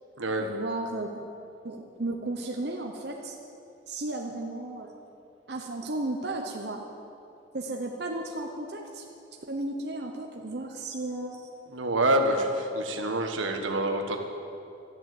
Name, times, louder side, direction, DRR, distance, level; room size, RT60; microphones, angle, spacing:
voice 1, 0.4-1.3 1.6-3.4 3.9-4.9 5.5-6.8 7.5-11.4, right 2 dB, 55° right, 1 dB, 0.9 m, -34 dB
voice 2, 11.7-14.2, right 1 dB, 85° right, 4 dB, 1.5 m, -26 dB
13.0 x 11.0 x 7.8 m, 2.7 s
head